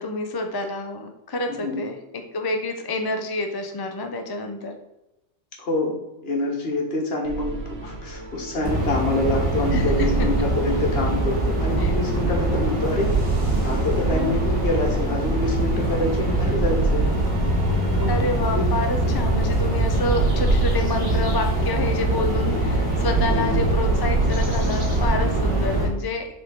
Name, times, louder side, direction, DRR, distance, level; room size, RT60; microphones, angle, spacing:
voice 1, 0.0-4.7 9.7-10.1 11.8-12.0 14.0-14.4 18.1-26.3, left 2 dB, 30° left, 4 dB, 0.4 m, -28 dB
voice 2, 1.5-1.8 5.6-13.1 13.6-17.1 17.9-18.1 18.5-18.7 23.3-23.6, left 2 dB, 55° left, 0 dB, 1.6 m, -26 dB
sound 1, 7.3-25.5, right 3 dB, 90° right, 1.3 m, -29 dB
sound 2, 8.6-25.9, right 1 dB, 50° right, 2.4 m, -23 dB
7.2 x 3.8 x 3.8 m, 0.93 s
omnidirectional pair, 1.2 m